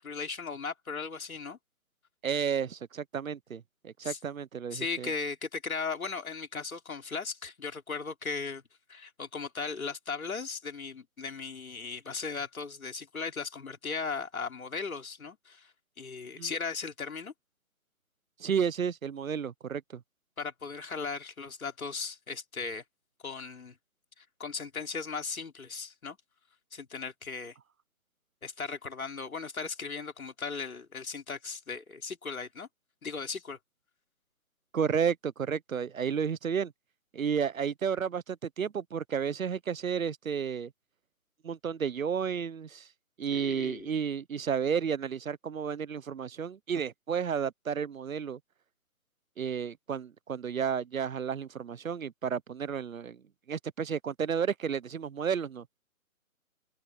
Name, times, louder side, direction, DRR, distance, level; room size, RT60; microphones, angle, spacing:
voice 1, 0.0-1.6 4.0-4.2 4.7-8.6 8.9-15.7 16.0-17.3 20.4-22.8 23.2-23.8 24.2-26.2 26.7-27.5 28.4-32.7 33.0-33.6 43.3-43.9, left 5 dB, 70° left, 3.7 m, -37 dB
voice 2, 2.2-5.1 16.4-16.5 18.4-20.0 34.7-36.7 37.1-40.7 41.4-42.9 43.2-48.4 49.4-53.2 53.5-55.6, right 7 dB, 65° right, 1.0 m, -32 dB
figure-of-eight pair, 155°, 43 cm